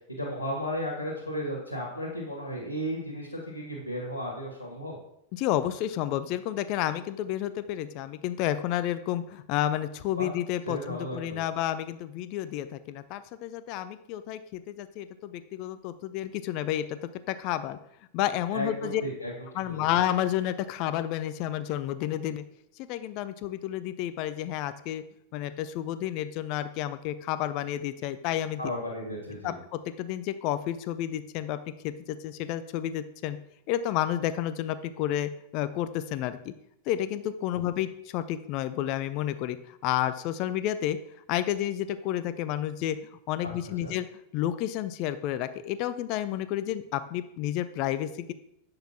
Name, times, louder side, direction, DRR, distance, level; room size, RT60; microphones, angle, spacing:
voice 1, 0.2-5.0 10.2-10.3 10.7-11.4 18.5-19.8 28.6-29.6 43.4-43.5 43.8-43.9, equal, 80° left, -2 dB, 2.0 m, -34 dB
voice 2, 5.3-17.0 17.3-17.8 18.1-19.0 19.5-22.4 22.9-25.0 25.3-28.6 29.4-31.6 31.8-33.4 33.7-36.5 36.9-41.0 41.3-43.0 43.3-44.1 44.3-48.3, left 12 dB, 45° left, 13 dB, 0.5 m, -30 dB
7.9 x 6.7 x 2.9 m, 0.76 s
figure-of-eight pair, 90°, 0 cm